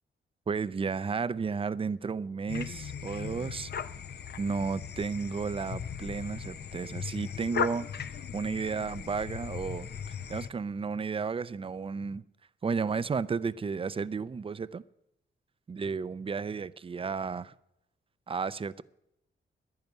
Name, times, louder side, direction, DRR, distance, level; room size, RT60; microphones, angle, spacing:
voice 1, 0.5-3.7 4.4-7.9 8.1-12.2 12.6-14.8 15.7-17.5 18.3-18.8, right 5 dB, 25° right, 0.5 m, -33 dB
sound 1, 2.5-10.5, left 7 dB, 55° left, 0.7 m, -38 dB
11.0 x 10.5 x 9.3 m
cardioid pair, 85°, 20 cm